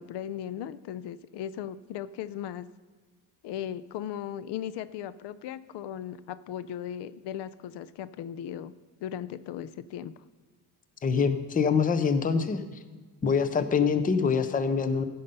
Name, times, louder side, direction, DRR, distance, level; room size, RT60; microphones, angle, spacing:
voice 1, 0.0-2.7 3.4-8.7 9.0-10.1, left 10 dB, 75° left, 16 dB, 0.6 m, -37 dB
voice 2, 11.0-12.8 13.2-15.0, left 5 dB, 20° left, 11 dB, 0.6 m, -25 dB
15.5 x 5.7 x 5.3 m, 1.4 s
cardioid pair, 150°, 42 cm